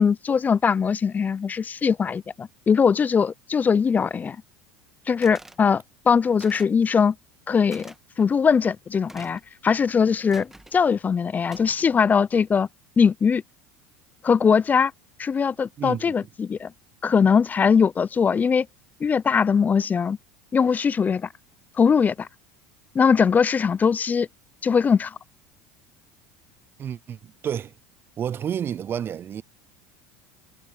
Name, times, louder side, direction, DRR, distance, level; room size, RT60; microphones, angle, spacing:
voice 1, 0.0-4.4 5.1-7.1 7.5-12.7 13.0-13.4 14.2-14.9 15.2-16.7 17.0-18.7 19.0-20.2 20.5-21.3 21.8-22.3 22.9-24.3 24.6-25.2, left 6 dB, 25° left, 0.7 m, -21 dB
sound 1, 5.2-5.6 6.4-6.8 7.7-8.0 9.1-9.5 10.3-10.8 11.5-12.0, right 1 dB, 5° right, 2.2 m, -46 dB
voice 2, 15.8-16.1 26.8-27.7 28.2-29.4, right 9 dB, 35° right, 0.6 m, -30 dB
hypercardioid pair, 80°, 6 cm